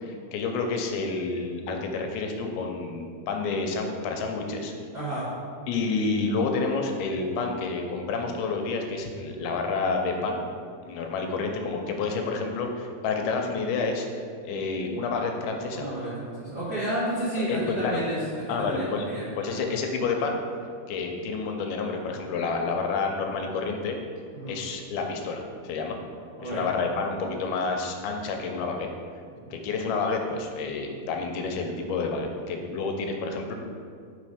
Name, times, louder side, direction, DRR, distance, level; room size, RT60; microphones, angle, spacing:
voice 1, 0.0-4.7 5.7-10.4 10.9-15.9 17.5-18.0 18.5-19.1 19.4-20.4 20.9-24.0 24.5-26.0 26.4-28.9 29.5-33.6, left 4 dB, 90° left, 3 dB, 2.6 m, -29 dB
voice 2, 4.9-5.3 15.7-18.2 18.5-19.6 24.3-24.5 26.4-26.7 29.3-29.5, right 1 dB, 80° right, -11 dB, 0.9 m, -31 dB
5.9 x 4.2 x 4.9 m, 2.2 s
omnidirectional pair, 4.5 m